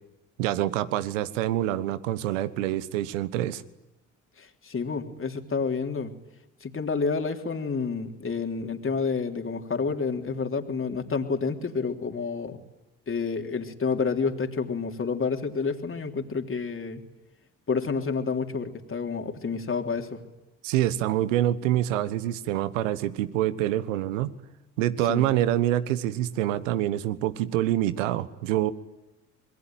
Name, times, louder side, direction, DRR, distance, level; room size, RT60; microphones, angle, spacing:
voice 1, 0.4-3.6 20.6-24.3 24.8-28.7, right 13 dB, 85° right, 15 dB, 1.3 m, -26 dB
voice 2, 4.4-6.1 6.6-12.6 13.1-17.0 17.7-20.2 25.1-25.3, left 5 dB, 35° left, 4 dB, 3.5 m, -29 dB
26.0 x 22.0 x 9.2 m, 0.97 s
hypercardioid pair, 60°, 37 cm